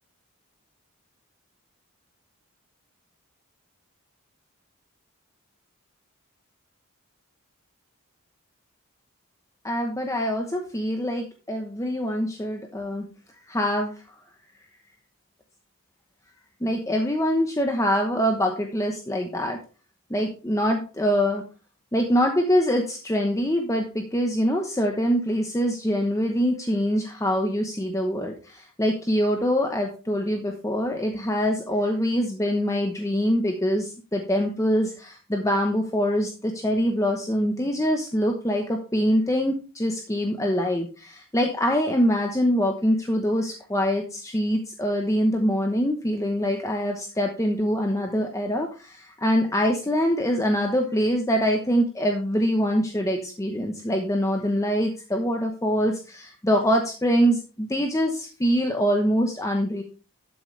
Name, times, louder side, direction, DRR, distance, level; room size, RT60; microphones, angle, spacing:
voice 1, 9.6-13.0 13.5-13.9 16.6-19.6 20.1-21.4 21.9-59.8, equal, 15° left, 3 dB, 1.0 m, -24 dB
12.5 x 7.7 x 3.3 m, 0.35 s
head